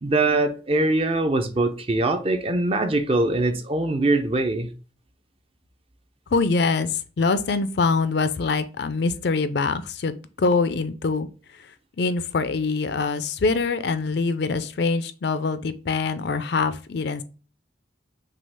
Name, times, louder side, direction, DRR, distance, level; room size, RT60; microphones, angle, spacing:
voice 1, 0.0-4.7, right 2 dB, 30° right, 0.5 m, -22 dB
voice 2, 6.3-11.3 12.0-17.2, left 4 dB, 55° left, 0.4 m, -24 dB
6.2 x 2.4 x 3.4 m
head